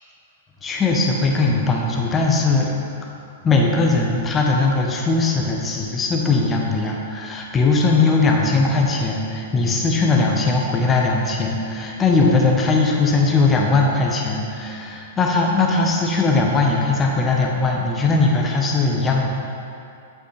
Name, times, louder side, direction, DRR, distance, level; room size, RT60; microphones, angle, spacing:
voice 1, 0.6-2.7 3.4-19.3, left 3 dB, 20° left, 0 dB, 0.9 m, -19 dB
7.9 x 5.9 x 3.3 m, 2.6 s
hypercardioid pair, 110°, 0 cm